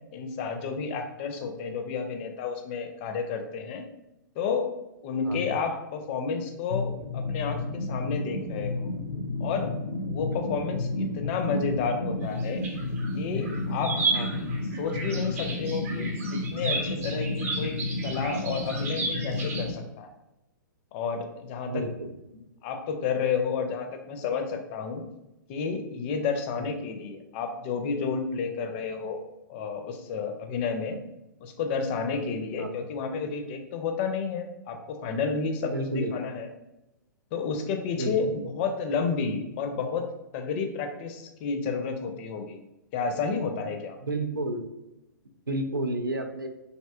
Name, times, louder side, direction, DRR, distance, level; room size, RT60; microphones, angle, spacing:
voice 1, 0.1-3.8 4.4-4.7 5.0-8.9 9.4-9.7 10.0-12.7 13.2-14.0 14.8-17.8 18.0-20.1 20.9-21.9 22.3-25.0 25.5-29.2 29.5-31.0 31.4-36.5 37.3-40.1 40.3-42.6 42.9-44.0, left 5 dB, 35° left, 6 dB, 0.4 m, -31 dB
voice 2, 5.2-5.6 10.3-10.6 14.1-14.4 21.6-22.1 26.5-26.7 32.6-32.9 35.6-36.2 38.0-38.3 44.0-44.7 45.5-46.5, right 1 dB, 90° right, 6 dB, 0.4 m, -32 dB
sound 1, 6.7-19.7, left 2 dB, 85° left, 0.5 m, -31 dB
sound 2, 12.2-13.1 13.4-19.7, right 3 dB, 45° right, 0.7 m, -33 dB
3.1 x 2.7 x 2.2 m, 0.92 s
figure-of-eight pair, 110°, 11 cm